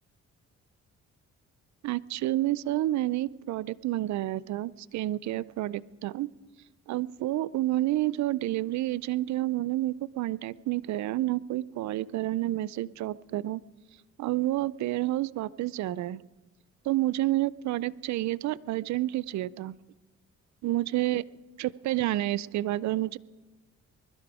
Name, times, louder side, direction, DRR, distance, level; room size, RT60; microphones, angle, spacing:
voice 1, 1.8-6.3 6.9-13.6 14.2-16.2 16.9-19.8 20.6-21.2 21.6-23.2, right 15 dB, 70° right, 18 dB, 0.5 m, -29 dB
21.0 x 12.0 x 4.8 m, 1.2 s
cardioid pair, 90°, 30 cm